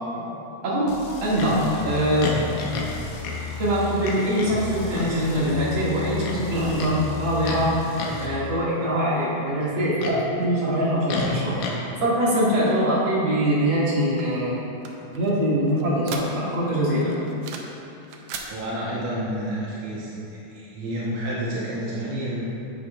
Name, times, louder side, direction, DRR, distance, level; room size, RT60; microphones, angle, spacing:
voice 1, 0.6-0.9 1.2-2.3 3.6-7.7 8.2-11.6 12.0-14.6 15.1-17.2, equal, 45° right, -9 dB, 2.4 m, -23 dB
sound 1, 0.9-8.3, left 4 dB, 70° left, 2.1 m, -36 dB
Livestock farm animals working animals, 1.4-1.6 2.2-2.9 3.2-3.4 4.0-4.6 4.9-5.2 6.2-6.9 7.4-7.6 8.0-8.3 9.6-10.2 11.1-11.8, left 3 dB, 90° left, 2.4 m, -31 dB
sound 2, 14.2-16.7 17.0-17.8 18.0-18.5, right 6 dB, 90° right, 1.3 m, -38 dB
voice 2, 18.5-22.4, right 1 dB, 65° right, -7 dB, 1.4 m, -30 dB
10.0 x 7.9 x 2.3 m, 2.9 s
omnidirectional pair, 3.5 m